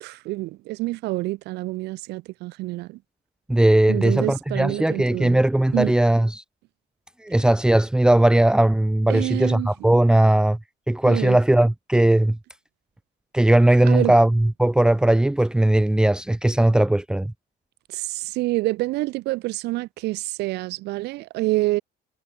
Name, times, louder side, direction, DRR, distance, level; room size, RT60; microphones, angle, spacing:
voice 1, 0.0-3.0 3.9-5.4 5.7-5.9 9.1-9.7 11.1-11.4 13.8-14.2 17.9-21.8, right 19 dB, 60° right, 0.8 m, -27 dB
voice 2, 3.5-6.4 7.2-10.6 10.9-12.4 13.3-17.3, right 1 dB, 5° right, 1.3 m, -18 dB
cardioid pair, 175°, 19 cm